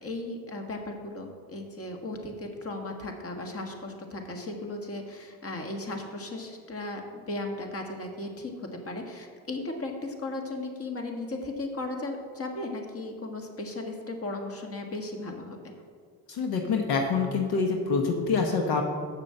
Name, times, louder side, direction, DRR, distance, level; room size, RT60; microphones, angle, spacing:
voice 1, 0.0-15.6, left 2 dB, 35° left, 3 dB, 1.7 m, -36 dB
voice 2, 16.3-18.8, left 4 dB, 70° left, 3 dB, 1.1 m, -26 dB
7.1 x 6.7 x 7.7 m, 2.1 s
supercardioid pair, 85°, 39 cm